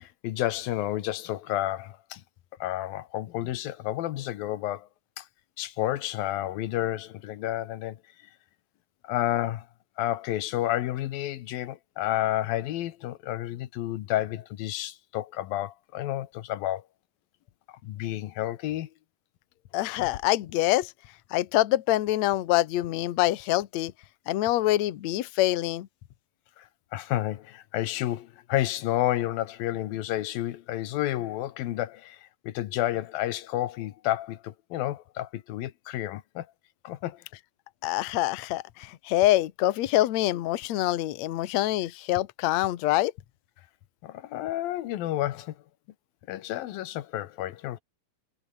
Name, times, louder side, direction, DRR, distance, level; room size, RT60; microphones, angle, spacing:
voice 1, 0.0-2.2 2.6-4.9 5.2-5.3 5.6-8.0 9.0-9.7 10.0-16.8 17.7-18.9 20.0-20.1 26.6-26.7 26.9-36.5 36.8-37.2 44.0-45.5 46.3-47.8, left 14 dB, 90° left, 3.0 m, -30 dB
voice 2, 19.7-20.9 21.3-23.9 24.3-25.9 37.8-43.1, left 15 dB, 65° left, 2.1 m, -25 dB
omnidirectional pair, 4.0 m